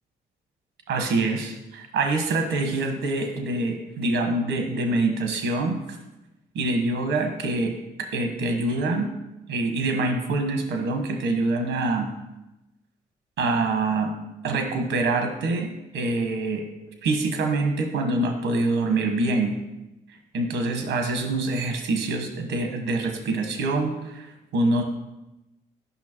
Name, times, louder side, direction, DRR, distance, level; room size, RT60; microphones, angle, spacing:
voice 1, 0.9-6.0 6.5-7.7 8.0-9.1 9.5-12.1 13.4-14.1 14.4-16.6 17.0-19.5 20.3-24.3 24.5-24.8, right 2 dB, 75° right, 5 dB, 1.2 m, -25 dB
8.5 x 5.8 x 3.0 m, 0.97 s
hypercardioid pair, 45°, 20 cm